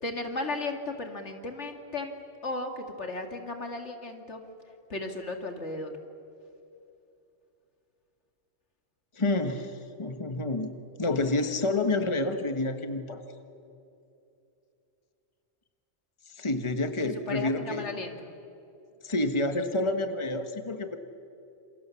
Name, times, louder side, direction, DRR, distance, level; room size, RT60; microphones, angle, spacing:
voice 1, 0.0-2.1 2.4-4.4 4.9-5.9 17.1-18.3, left 2 dB, 80° left, 5 dB, 2.6 m, -35 dB
voice 2, 9.1-13.2 16.3-17.9 19.0-21.0, left 2 dB, 25° left, 7 dB, 1.5 m, -29 dB
28.0 x 27.5 x 7.1 m, 2.7 s
omnidirectional pair, 1.2 m